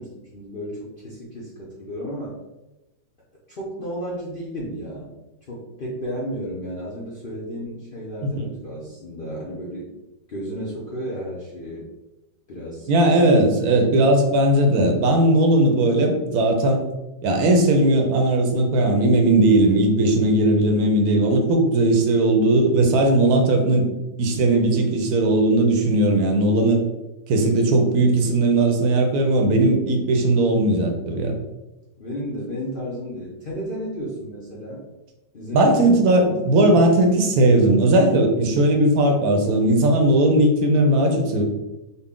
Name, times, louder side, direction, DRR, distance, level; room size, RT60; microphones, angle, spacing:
voice 1, 0.0-2.3 3.5-5.1 5.5-9.9 10.3-11.8 12.5-12.9 24.3-24.7 32.0-34.8 35.3-36.1, equal, 65° left, -6 dB, 0.5 m, -33 dB
voice 2, 12.9-16.8 17.2-23.9 24.2-26.8 27.3-31.4 35.5-41.4, right 1 dB, 65° right, 3 dB, 1.0 m, -18 dB
4.1 x 2.1 x 3.6 m, 1.0 s
omnidirectional pair, 1.9 m